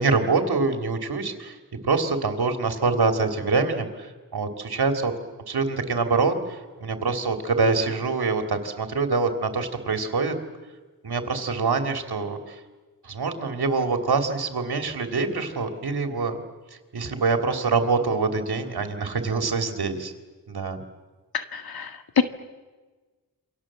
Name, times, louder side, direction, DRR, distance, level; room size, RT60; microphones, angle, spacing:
voice 1, 0.0-1.6 1.8-5.1 5.5-10.3 11.0-12.6 13.0-16.4 16.9-20.1 20.5-20.8, right 4 dB, 80° right, 6 dB, 3.1 m, -25 dB
voice 2, 21.3-22.2, left 6 dB, 70° left, 8 dB, 1.8 m, -25 dB
28.5 x 25.0 x 7.6 m, 1.3 s
wide cardioid pair, 85°, 38 cm